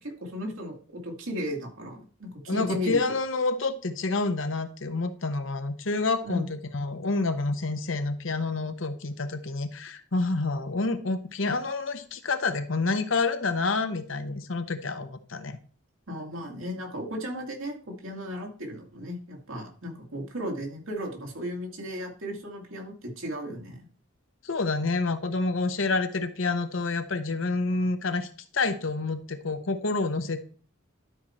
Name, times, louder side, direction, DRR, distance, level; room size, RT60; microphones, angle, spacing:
voice 1, 0.0-3.0 6.2-6.5 16.1-23.9, equal, 85° right, 1 dB, 2.1 m, -35 dB
voice 2, 2.5-15.6 24.4-28.3 28.5-30.4, left 3 dB, 75° left, 9 dB, 0.9 m, -28 dB
12.0 x 4.4 x 4.3 m, 0.42 s
head